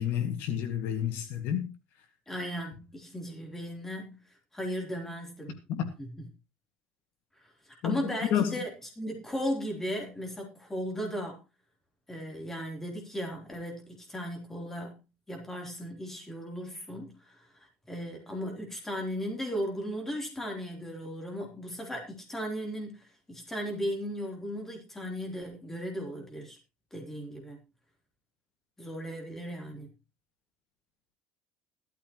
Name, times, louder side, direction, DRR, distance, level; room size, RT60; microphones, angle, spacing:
voice 1, 0.0-1.7 5.7-5.9 7.8-8.0 8.3-8.6, left 9 dB, 60° left, 2.0 m, -29 dB
voice 2, 2.3-4.2 4.5-5.6 6.0-6.3 7.4-7.5 7.8-11.4 12.1-15.0 15.3-26.6 26.9-27.6 28.8-29.9, equal, 10° left, 3.6 m, -36 dB
15.0 x 13.0 x 3.1 m
cardioid pair, 160°, 4 cm